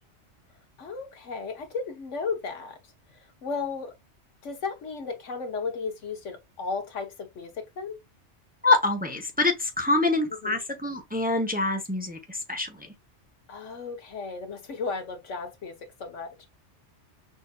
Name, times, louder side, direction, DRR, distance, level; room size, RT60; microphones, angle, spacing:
voice 1, 0.8-2.8 3.1-3.9 4.4-8.0 10.4-10.6 13.5-16.3, left 4 dB, 90° left, 1.4 m, -34 dB
voice 2, 8.6-12.7, left 2 dB, 10° right, 0.8 m, -25 dB
6.3 x 2.7 x 2.3 m
omnidirectional pair, 1.2 m